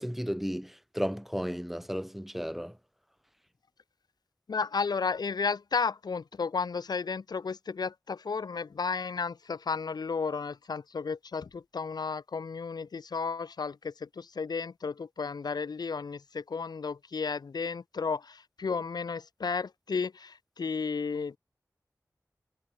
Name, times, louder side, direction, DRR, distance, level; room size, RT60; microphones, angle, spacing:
voice 1, 0.0-2.7, equal, 5° right, 0.3 m, -34 dB
voice 2, 4.5-21.4, left 5 dB, 90° left, 1.0 m, -33 dB
cardioid pair, 45°, 7 cm